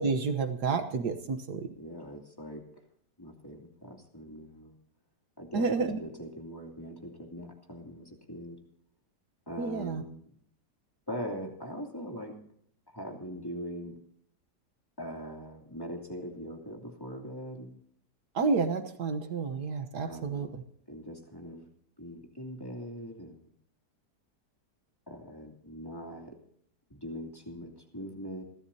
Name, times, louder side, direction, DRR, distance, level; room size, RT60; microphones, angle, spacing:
voice 1, 0.0-1.7 5.5-6.0 9.6-10.0 18.3-20.5, right 4 dB, 70° right, 8 dB, 1.7 m, -30 dB
voice 2, 1.8-2.6 3.2-4.7 5.4-8.6 9.5-10.3 11.1-12.3 12.9-13.9 15.0-17.8 20.0-20.5 20.9-21.7 22.0-23.5 25.1-26.3 26.9-28.4, equal, 15° left, 1 dB, 2.8 m, -41 dB
28.5 x 12.5 x 2.8 m, 0.66 s
omnidirectional pair, 1.8 m